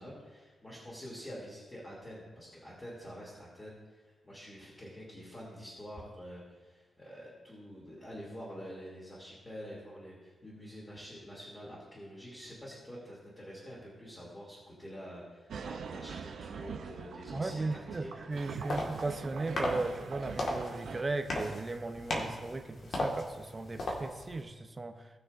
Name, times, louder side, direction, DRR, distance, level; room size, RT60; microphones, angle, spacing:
voice 1, 0.0-18.1, equal, 20° left, -7 dB, 3.0 m, -47 dB
sound 1, 15.5-21.0, right 6 dB, 80° right, 0.6 m, -43 dB
voice 2, 17.3-24.9, right 3 dB, 25° right, 6 dB, 0.8 m, -36 dB
sound 2, 18.3-24.4, left 1 dB, 60° left, 1.8 m, -37 dB
19.0 x 6.4 x 2.7 m, 1.3 s
wide cardioid pair, 115°, 0 cm